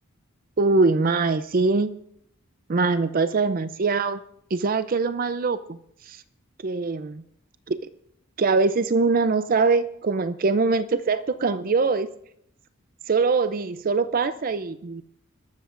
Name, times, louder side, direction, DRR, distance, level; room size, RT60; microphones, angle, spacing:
voice 1, 0.6-1.9 2.7-4.2 4.5-5.8 6.0-6.2 6.6-7.2 7.7-7.8 8.4-12.1 13.1-15.0, right 4 dB, 40° right, 12 dB, 0.5 m, -23 dB
29.5 x 12.5 x 2.5 m, 0.74 s
head